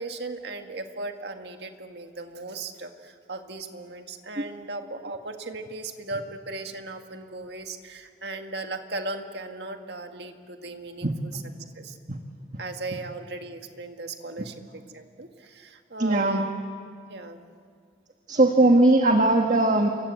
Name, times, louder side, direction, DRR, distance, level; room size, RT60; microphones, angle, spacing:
voice 1, 0.0-11.4 11.8-12.0 12.6-16.4 17.1-17.4, right 2 dB, 65° right, 5 dB, 1.9 m, -37 dB
voice 2, 16.0-16.5 18.3-19.9, right 2 dB, 45° right, 3 dB, 1.6 m, -19 dB
28.5 x 24.5 x 8.4 m, 2.2 s
head